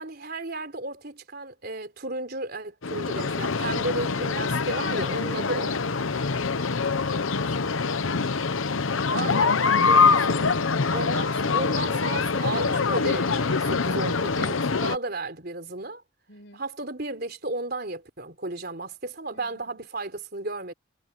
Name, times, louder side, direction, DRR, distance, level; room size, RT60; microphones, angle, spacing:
voice 1, 0.0-5.8 9.1-10.5 10.9-16.0 16.6-20.7, right 2 dB, 50° right, 4.0 m, -34 dB
sound 1, 2.8-15.0, left 4 dB, 85° left, 0.9 m, -24 dB
voice 2, 16.3-16.6 19.3-19.8, left 1 dB, 60° left, 6.0 m, -49 dB
head